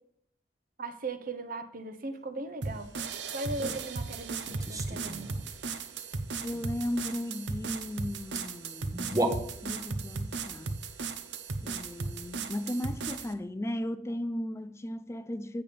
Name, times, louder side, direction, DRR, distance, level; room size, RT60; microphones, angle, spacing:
voice 1, 0.8-2.9 3.3-5.3, right 2 dB, 50° right, 0.9 m, -38 dB
sound 1, 2.6-13.3, right 4 dB, 80° right, 0.7 m, -36 dB
sound 2, 3.5-3.8 4.5-5.5 8.1-8.2 8.3-8.4 8.9-9.9, right 1 dB, 20° right, 0.9 m, -33 dB
voice 2, 6.4-9.1 9.6-10.8 11.6-15.6, left 1 dB, 15° left, 0.4 m, -36 dB
8.4 x 6.9 x 5.1 m
head